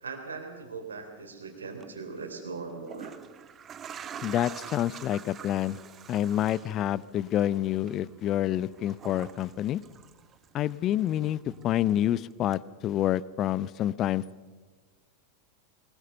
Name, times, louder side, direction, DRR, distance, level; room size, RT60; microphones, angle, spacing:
voice 1, 0.0-3.2, right 4 dB, 70° right, 5 dB, 3.2 m, -39 dB
sound 1, 1.8-1.9 2.7-10.7 11.0-12.1 12.5-12.6, right 8 dB, 25° right, 1.0 m, -46 dB
voice 2, 4.2-5.8 6.1-9.8 10.5-14.2, left 12 dB, 35° left, 21 dB, 0.6 m, -28 dB
22.0 x 20.5 x 6.7 m, 1.4 s
figure-of-eight pair, 90°, 0 cm